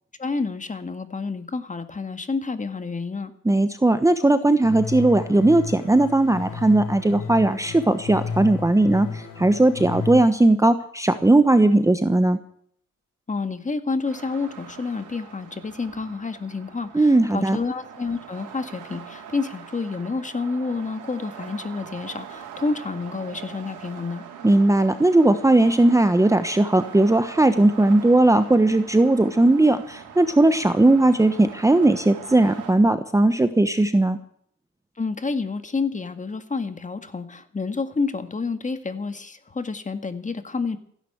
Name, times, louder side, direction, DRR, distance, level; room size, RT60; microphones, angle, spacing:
voice 1, 0.2-3.3 13.3-24.2 35.0-40.8, left 4 dB, 25° left, 9 dB, 1.9 m, -29 dB
voice 2, 3.4-12.4 16.9-17.6 24.4-34.2, right 2 dB, 10° right, 10 dB, 1.0 m, -18 dB
sound 1, 4.6-10.2, left 5 dB, 90° left, 5.0 m, -33 dB
sound 2, 14.0-32.7, right 8 dB, 90° right, 3.9 m, -42 dB
15.5 x 11.0 x 8.0 m, 0.64 s
cardioid pair, 90°, 30 cm